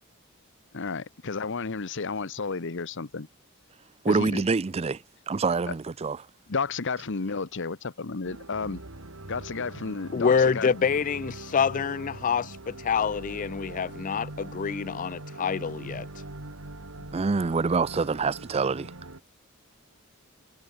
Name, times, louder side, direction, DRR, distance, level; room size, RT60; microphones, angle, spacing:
voice 1, 0.7-3.3 4.1-4.4 6.5-8.8 9.3-10.7, left 4 dB, 60° left, 1.0 m, -32 dB
voice 2, 4.0-6.2 17.1-18.9, right 4 dB, 30° right, 0.4 m, -26 dB
sound 1, 8.2-19.2, right 2 dB, 80° right, 2.4 m, -42 dB
voice 3, 10.1-16.2, left 6 dB, 40° left, 0.4 m, -26 dB
head